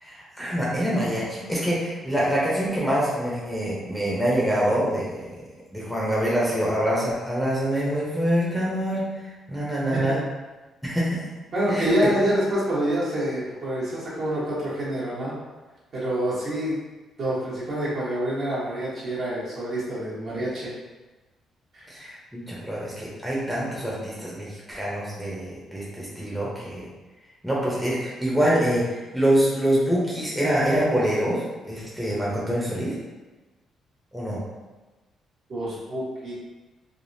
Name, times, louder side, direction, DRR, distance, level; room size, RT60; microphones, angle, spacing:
voice 1, 0.0-5.1 5.7-9.0 9.5-10.2 10.8-11.2 11.7-11.9 21.9-26.9 27.4-32.9 34.1-34.4, equal, ahead, -6 dB, 0.8 m, -25 dB
voice 2, 11.5-15.3 15.9-16.8 17.2-20.7 21.7-21.9 35.5-36.3, equal, 55° right, -8 dB, 1.1 m, -26 dB
3.4 x 2.0 x 2.6 m, 1.2 s
cardioid pair, 90°, 0 cm